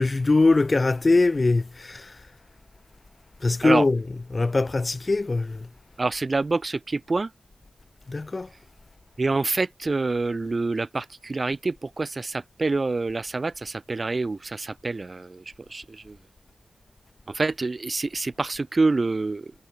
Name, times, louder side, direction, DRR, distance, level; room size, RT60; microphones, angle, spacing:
voice 1, 0.0-2.2 3.4-5.7 8.1-8.5, left 3 dB, 30° left, 0.6 m, -22 dB
voice 2, 6.0-7.3 9.2-15.4 15.7-16.2 17.3-19.5, right 3 dB, 35° right, 0.9 m, -26 dB
wide cardioid pair, 135°, 0 cm